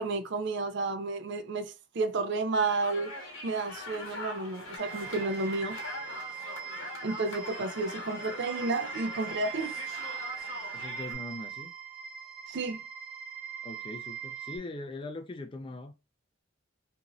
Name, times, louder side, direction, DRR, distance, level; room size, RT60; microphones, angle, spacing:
voice 1, 0.0-3.1 3.4-5.8 7.0-9.7 12.5-12.8, right 3 dB, 55° right, 0.4 m, -31 dB
sound 1, 2.5-11.1, left 2 dB, 65° left, 0.9 m, -42 dB
sound 2, 4.8-14.6, right 9 dB, 40° right, 0.9 m, -41 dB
voice 2, 10.7-11.7 13.6-15.9, left 2 dB, 25° left, 0.3 m, -41 dB
2.9 x 2.6 x 2.4 m
head